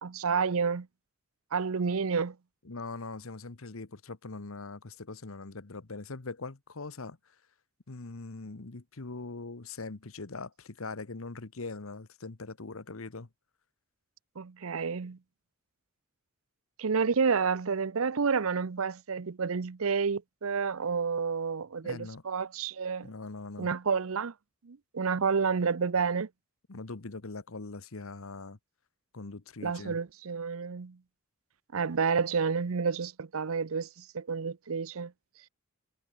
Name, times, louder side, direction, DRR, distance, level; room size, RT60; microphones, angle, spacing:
voice 1, 0.0-0.9 1.5-2.4 14.4-15.2 16.8-23.1 23.6-24.3 24.6-26.3 29.6-31.0 31.7-33.9 34.1-35.1, right 5 dB, 75° right, 0.6 m, -29 dB
voice 2, 2.6-7.2 7.9-13.3 21.8-22.2 23.0-23.7 26.7-28.6 29.1-30.0, left 3 dB, 70° left, 1.2 m, -41 dB
head